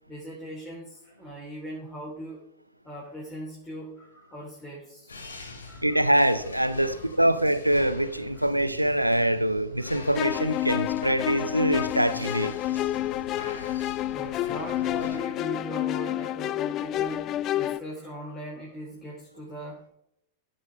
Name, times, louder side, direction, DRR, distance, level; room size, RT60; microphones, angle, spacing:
voice 1, 0.1-2.4 2.8-5.2 5.6-6.2 6.7-7.2 8.3-8.5 9.8-10.0 13.0-13.2 13.6-13.8 14.1-19.9, equal, 10° left, 3.4 m, -40 dB
sound 1, 5.1-15.2, left 3 dB, 75° left, 2.3 m, -43 dB
voice 2, 5.8-12.5, right 1 dB, 85° right, 0.7 m, -24 dB
sound 2, 10.1-17.8, left 13 dB, 35° left, 0.3 m, -29 dB
15.0 x 5.4 x 5.2 m
figure-of-eight pair, 90°, 0 cm